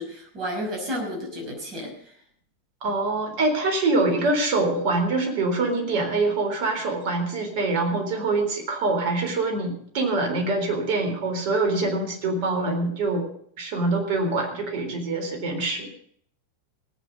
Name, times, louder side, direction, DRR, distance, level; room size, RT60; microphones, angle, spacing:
voice 1, 0.0-2.2, equal, 30° right, 0 dB, 5.9 m, -32 dB
voice 2, 2.8-13.3 13.6-15.9, right 2 dB, 45° right, 3 dB, 3.7 m, -24 dB
18.5 x 8.9 x 5.3 m, 0.63 s
figure-of-eight pair, 90°, 0 cm